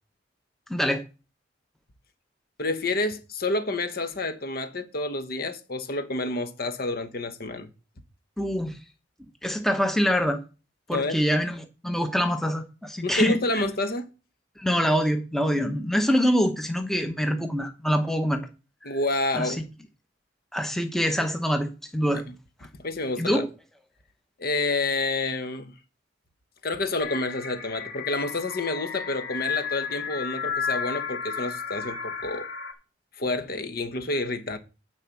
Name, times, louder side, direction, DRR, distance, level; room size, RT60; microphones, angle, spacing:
voice 1, 0.7-1.0 8.4-8.8 9.2-10.4 10.9-13.6 14.6-18.4 18.8-19.0 19.3-19.6 20.5-22.2 23.2-23.5, equal, ahead, 0.9 m, -25 dB
voice 2, 2.6-7.7 10.9-11.2 13.0-14.1 18.8-19.7 22.1-22.2 22.8-23.4 24.4-25.7 26.6-32.5 33.2-34.6, left 2 dB, 55° left, 1.0 m, -29 dB
sound 1, 27.0-32.7, left 6 dB, 70° left, 2.4 m, -33 dB
9.8 x 4.3 x 7.1 m
head